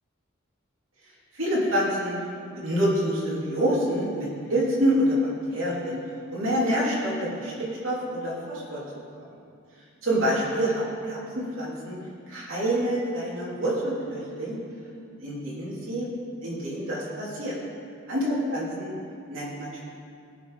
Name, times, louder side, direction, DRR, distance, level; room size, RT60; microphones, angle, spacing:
voice 1, 1.3-2.1 2.5-6.0 6.3-8.8 10.0-12.0 12.3-14.6 15.2-16.1 16.4-17.6 18.1-18.9 19.3-19.8, equal, 70° right, -7 dB, 3.1 m, -27 dB
19.0 x 7.1 x 4.0 m, 2.4 s
head